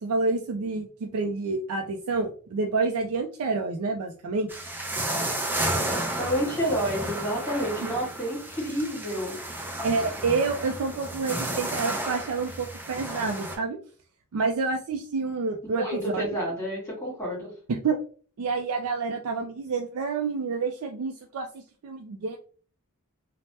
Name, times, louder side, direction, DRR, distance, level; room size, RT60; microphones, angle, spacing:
voice 1, 0.0-4.6 7.8-7.9 9.8-13.8 14.3-15.9 16.1-16.2 17.7-18.0 18.4-22.4, right 4 dB, 75° right, 3 dB, 0.4 m, -28 dB
sound 1, 4.5-13.6, right 1 dB, 10° right, 0.5 m, -32 dB
voice 2, 6.2-9.4 15.8-17.5, equal, 10° left, -3 dB, 1.5 m, -29 dB
3.2 x 2.1 x 2.7 m, 0.40 s
head